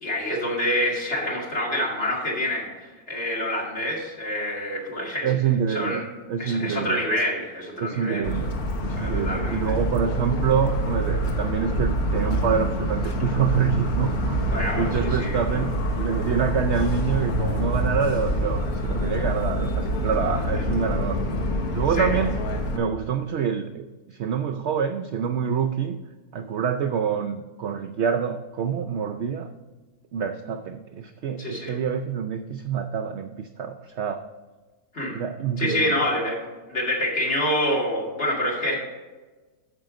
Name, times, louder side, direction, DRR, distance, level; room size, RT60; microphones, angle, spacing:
voice 1, 0.0-5.3 5.7-6.1 6.4-8.3 9.0-9.7 14.5-15.6 20.5-20.6 21.9-22.2 31.4-31.8 34.9-35.2 35.6-36.4 36.7-38.8, left 1 dB, 45° left, -2 dB, 2.5 m, -27 dB
voice 2, 5.2-7.0 7.8-21.2 21.7-22.3 22.7-26.0 26.3-29.5 30.1-34.2 35.1-36.0, right 7 dB, 70° right, 8 dB, 0.6 m, -26 dB
Motor vehicle (road) / Siren, 8.2-22.8, equal, 70° left, 1.6 m, -26 dB
9.1 x 7.0 x 5.0 m, 1.3 s
omnidirectional pair, 1.6 m